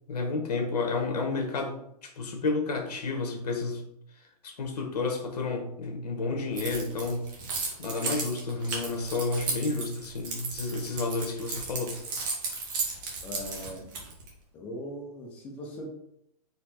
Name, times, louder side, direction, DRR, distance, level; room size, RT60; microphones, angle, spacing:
voice 1, 0.1-1.8 2.0-3.8 4.4-7.3 7.8-11.9, left 3 dB, 75° left, 3 dB, 1.2 m, -31 dB
Keys jangling, 6.6-14.3, right 4 dB, 30° right, 1.1 m, -34 dB
voice 2, 13.2-13.9 14.5-15.9, equal, 5° left, 1 dB, 0.3 m, -39 dB
4.3 x 2.7 x 4.2 m, 0.75 s
hypercardioid pair, 165°, 21 cm